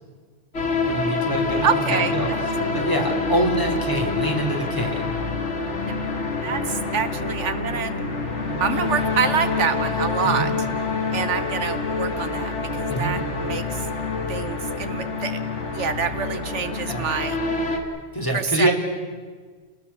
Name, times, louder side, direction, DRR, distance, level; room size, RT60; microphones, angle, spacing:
sound 1, 0.5-17.8, left 3 dB, 65° left, 2.4 m, -26 dB
voice 1, 0.8-5.1 10.2-10.5 12.9-13.2 16.9-17.1 18.1-18.7, right 1 dB, 15° left, 0 dB, 3.5 m, -25 dB
voice 2, 1.6-2.4 5.8-5.9 6.4-7.9 8.6-10.5 11.1-13.9 14.3-15.4 15.7-17.4 18.3-18.7, right 6 dB, 70° right, 10 dB, 1.2 m, -26 dB
29.0 x 19.5 x 7.1 m, 1.5 s
omnidirectional pair, 1.3 m